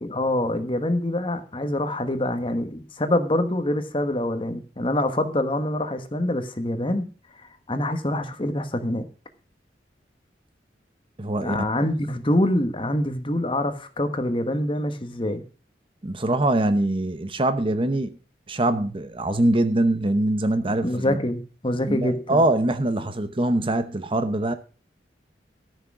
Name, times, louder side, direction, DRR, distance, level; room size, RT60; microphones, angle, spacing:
voice 1, 0.0-7.1 7.7-9.1 11.4-15.4 20.6-22.4, left 1 dB, 30° left, 1.3 m, -25 dB
voice 2, 11.2-11.6 16.0-18.1 18.5-21.2 21.9-24.5, right 1 dB, 30° right, 0.9 m, -23 dB
13.5 x 6.4 x 6.1 m
head